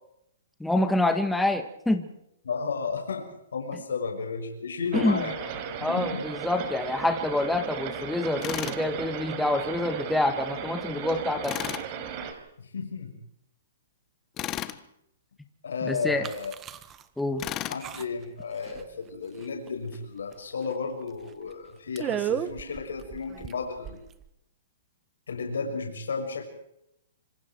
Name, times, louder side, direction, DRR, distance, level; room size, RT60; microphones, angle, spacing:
voice 1, 0.6-2.1 4.9-5.2 5.8-11.6 15.8-16.3 17.2-17.4, left 2 dB, 5° left, 6 dB, 1.9 m, -27 dB
voice 2, 2.4-5.5 5.8-6.2 12.6-13.1 15.6-16.5 17.7-24.0 25.3-26.4, left 5 dB, 85° left, 3 dB, 6.3 m, -33 dB
sound 1, 4.9-12.3, right 7 dB, 40° right, 4.8 m, -36 dB
Tools, 8.4-8.8 11.4-11.9 14.4-14.8 17.4-17.8, left 13 dB, 25° left, 1.5 m, -33 dB
sound 2, 16.2-17.0 17.4-17.5 17.8-18.3 18.6-19.1 19.4-20.0 20.3-20.4 20.7-20.8 21.3-21.5 22.0-24.3, right 9 dB, 20° right, 1.5 m, -34 dB
26.5 x 26.0 x 4.7 m, 0.78 s
hypercardioid pair, 150°, 0 cm